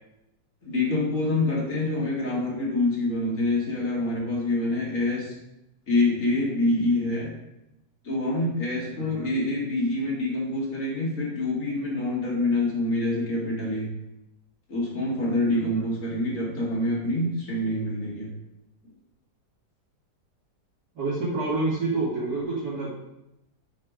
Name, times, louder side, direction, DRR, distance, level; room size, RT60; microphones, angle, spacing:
voice 1, 0.6-5.3 5.9-7.3 8.0-13.9 14.7-18.3, left 2 dB, 50° left, -4 dB, 2.7 m, -26 dB
voice 2, 8.9-9.3 15.5-15.8 20.9-22.9, right 3 dB, 75° right, -13 dB, 3.3 m, -28 dB
9.0 x 4.4 x 5.0 m, 0.87 s
omnidirectional pair, 1.8 m